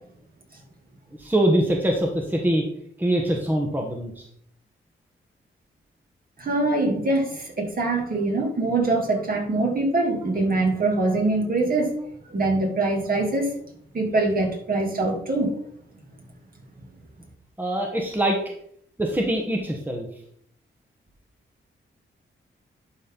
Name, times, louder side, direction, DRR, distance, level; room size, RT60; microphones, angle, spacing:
voice 1, 1.1-2.7 3.0-4.3 17.6-18.4 19.0-20.1, right 1 dB, 10° right, 1 dB, 1.2 m, -23 dB
voice 2, 6.4-11.9 12.2-13.6 13.9-15.5, right 2 dB, 45° right, 0 dB, 2.5 m, -23 dB
11.5 x 4.2 x 3.9 m, 0.65 s
cardioid pair, 95°, 21 cm